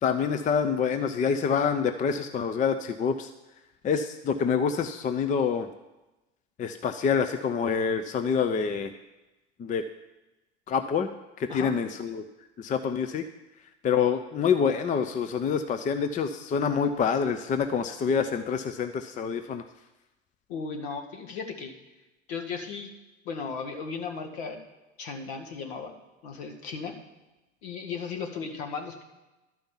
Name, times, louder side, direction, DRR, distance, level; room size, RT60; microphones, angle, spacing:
voice 1, 0.0-3.3 3.8-5.7 6.6-8.9 9.6-9.8 10.7-11.1 11.4-12.2 12.6-13.3 13.8-19.6, left 6 dB, 20° left, 9 dB, 0.6 m, -26 dB
voice 2, 20.5-21.7 22.3-22.9 23.3-24.6 25.0-25.9 26.2-26.9 27.6-29.0, left 5 dB, 60° left, 4 dB, 1.9 m, -36 dB
12.0 x 5.2 x 7.3 m, 1.0 s
hypercardioid pair, 90°, 36 cm